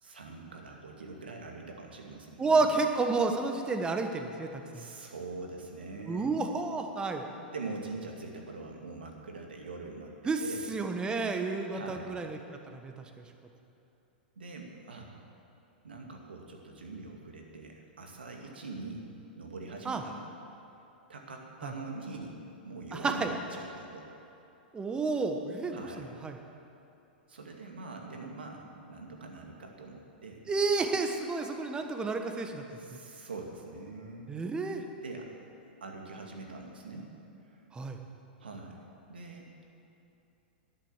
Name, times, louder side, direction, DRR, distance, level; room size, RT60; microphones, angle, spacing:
voice 1, 0.0-2.7 4.7-6.4 7.5-10.1 10.4-10.7 11.7-12.2 14.4-15.2 15.8-19.1 19.4-20.2 21.1-22.3 22.6-24.1 25.7-26.1 27.3-30.5 32.7-34.3 35.0-35.4 35.8-37.1 37.4-37.6 38.4-38.8 39.1-39.5, right 3 dB, 75° right, 1 dB, 2.2 m, -43 dB
voice 2, 2.4-4.5 4.7-4.9 6.1-7.2 10.2-10.4 10.7-12.4 12.7-12.9 19.8-20.0 21.6-21.7 22.9-23.3 24.7-26.4 30.5-32.6 34.3-34.8 37.7-38.0, right 3 dB, 15° right, 5 dB, 1.3 m, -30 dB
11.5 x 10.5 x 7.4 m, 2.9 s
figure-of-eight pair, 105°, 5 cm